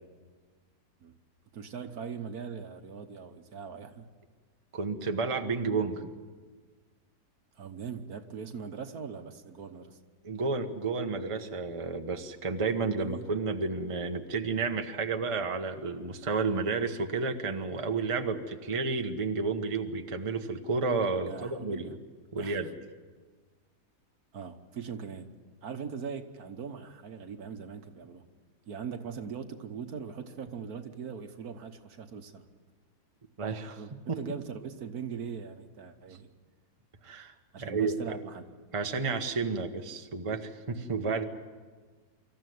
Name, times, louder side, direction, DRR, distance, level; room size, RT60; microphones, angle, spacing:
voice 1, 1.5-4.1 7.5-10.0 12.9-13.3 21.3-21.9 22.4-22.7 24.3-25.3 25.6-28.3 28.7-32.4 33.8-36.3 37.5-38.5, right 6 dB, 65° right, 1.6 m, -41 dB
voice 2, 4.7-6.1 10.2-21.9 22.3-22.7 33.4-33.8 34.1-34.2 37.0-37.3 37.6-38.0 38.7-41.2, right 4 dB, 20° right, 1.0 m, -31 dB
25.5 x 14.5 x 9.4 m
omnidirectional pair, 1.8 m